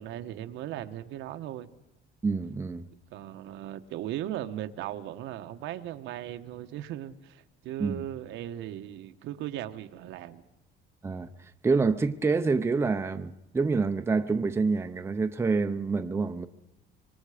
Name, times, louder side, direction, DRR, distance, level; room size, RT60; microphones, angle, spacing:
voice 1, 0.0-1.7 3.1-10.4, right 12 dB, 80° right, 1.2 m, -37 dB
voice 2, 2.2-2.9 7.8-8.0 11.0-11.3 11.6-16.5, right 4 dB, 15° right, 0.7 m, -27 dB
25.0 x 24.5 x 5.0 m
cardioid pair, 160°, 20 cm